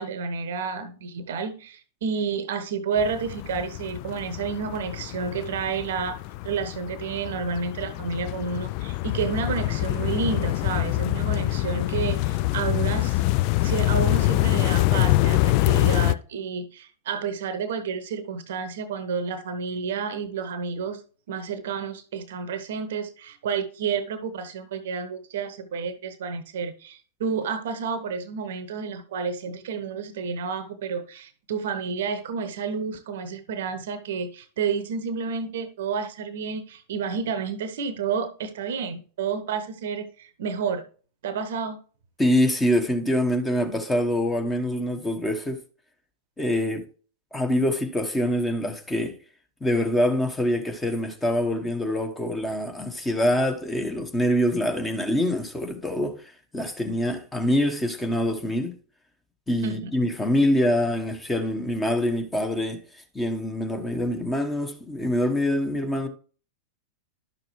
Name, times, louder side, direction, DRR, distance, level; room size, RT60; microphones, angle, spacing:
voice 1, 0.0-6.2 6.4-13.2 13.6-21.0 21.3-40.8 41.2-41.8 59.6-59.9, right 5 dB, 60° right, 0.8 m, -30 dB
sound 1, 3.0-16.1, left 18 dB, 45° left, 0.3 m, -25 dB
voice 2, 42.2-45.6 46.4-46.8 47.3-49.2 49.6-56.2 56.5-58.7 59.5-62.8 63.1-66.1, left 1 dB, 10° left, 1.2 m, -25 dB
11.5 x 6.6 x 3.1 m
figure-of-eight pair, 90°, 0 cm